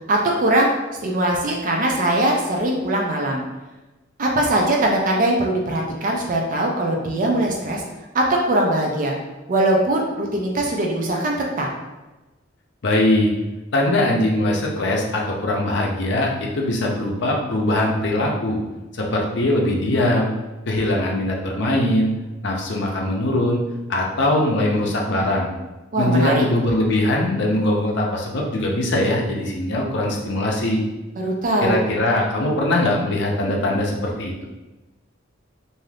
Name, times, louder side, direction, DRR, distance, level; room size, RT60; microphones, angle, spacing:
voice 1, 0.1-0.7 1.0-3.4 4.2-7.8 8.1-9.1 9.5-11.7 25.9-26.4 31.2-31.8, right 1 dB, 40° right, 0 dB, 0.4 m, -21 dB
voice 2, 12.8-13.3 13.7-18.6 18.9-20.3 20.7-22.1 22.4-23.6 23.9-25.5 26.0-30.8 31.6-34.4, left 1 dB, 60° left, -1 dB, 0.6 m, -21 dB
2.6 x 2.4 x 3.3 m, 1.1 s
head